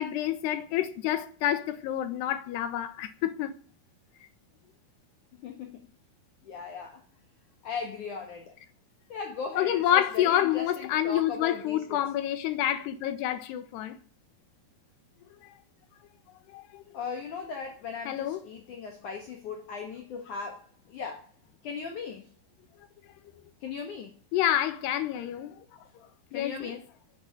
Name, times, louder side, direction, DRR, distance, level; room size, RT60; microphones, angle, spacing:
voice 1, 0.0-3.5 9.6-14.0 16.5-16.8 18.1-18.4 24.3-25.6 26.3-26.8, left 12 dB, 85° left, 3.3 m, -28 dB
voice 2, 5.3-5.8 6.4-7.0 7.6-8.6 9.1-12.0 16.9-21.3 21.6-22.3 23.6-24.1 26.3-26.8, left 5 dB, 60° left, 2.6 m, -38 dB
11.0 x 8.8 x 9.0 m
omnidirectional pair, 4.7 m